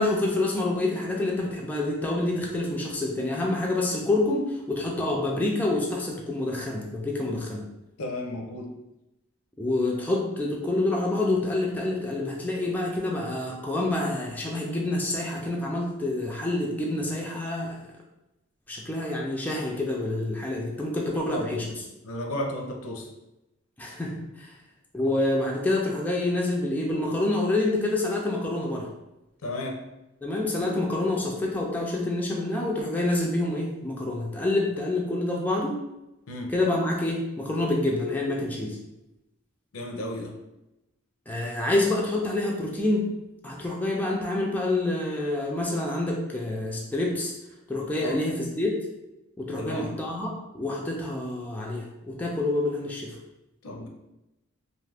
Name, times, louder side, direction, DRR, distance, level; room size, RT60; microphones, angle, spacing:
voice 1, 0.0-7.6 9.6-17.9 18.7-21.7 23.8-24.5 24.9-28.9 30.2-35.8 36.5-38.8 41.3-43.1 43.4-47.3 47.7-48.7 49.4-53.2, left 2 dB, 10° left, -2 dB, 0.4 m, -27 dB
voice 2, 8.0-8.7 21.1-21.7 22.0-23.1 29.4-29.8 36.3-36.5 39.7-40.4 48.0-48.2 49.6-49.9 53.6-53.9, left 1 dB, 85° left, 2 dB, 0.5 m, -33 dB
2.6 x 2.4 x 3.3 m, 0.95 s
head